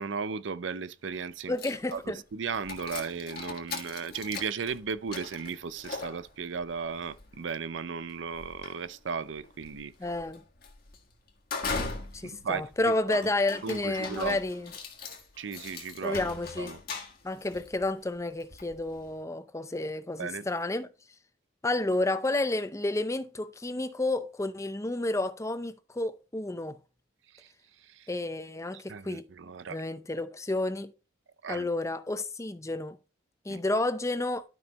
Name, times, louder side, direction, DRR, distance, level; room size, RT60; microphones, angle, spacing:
voice 1, 0.0-1.6 1.9-9.9 12.2-13.2 13.6-14.4 15.4-16.3 16.6-16.8 20.2-20.5 27.3-27.5 27.8-28.1 28.9-29.8 31.4-31.7 33.5-33.6, right 5 dB, 70° right, 0.5 m, -36 dB
sound 1, 1.1-1.2 1.6-19.2, left 4 dB, 50° left, 1.6 m, -41 dB
voice 2, 1.5-2.2 10.0-10.4 12.1-14.7 16.0-16.7 17.2-20.9 21.6-26.8 28.1-29.2 29.7-30.9 31.5-33.0 33.5-34.4, left 2 dB, 15° left, 0.5 m, -31 dB
12.5 x 5.4 x 3.0 m
head